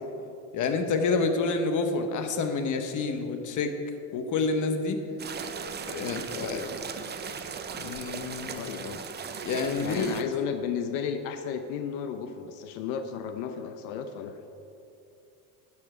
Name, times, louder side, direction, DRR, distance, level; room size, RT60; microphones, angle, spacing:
voice 1, 0.0-0.4 1.0-1.3 6.3-6.8 8.5-9.0 9.8-14.4, left 8 dB, 85° left, 8 dB, 0.8 m, -34 dB
voice 2, 0.5-3.7 4.1-5.0 5.8-6.6 7.7-8.5 9.4-10.2, left 4 dB, 45° left, 7 dB, 1.1 m, -28 dB
sound 1, 5.2-10.2, right 6 dB, 25° right, 0.6 m, -37 dB
11.0 x 7.3 x 5.0 m, 2.8 s
cardioid pair, 115°, 42 cm